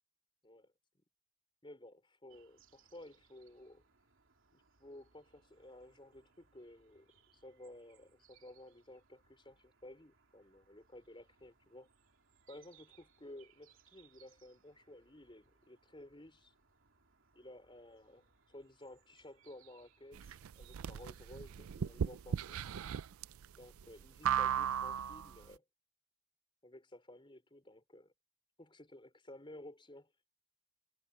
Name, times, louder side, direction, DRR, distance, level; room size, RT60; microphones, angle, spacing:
voice 1, 1.6-3.8 4.5-11.9 12.5-16.5 17.3-22.6 23.6-25.6 26.6-28.1 28.6-30.1, left 1 dB, 25° left, 4.7 m, -55 dB
sound 1, 2.3-22.2, right 7 dB, 65° right, 3.0 m, -70 dB
sound 2, 20.1-25.4, right 8 dB, 85° right, 0.4 m, -36 dB
head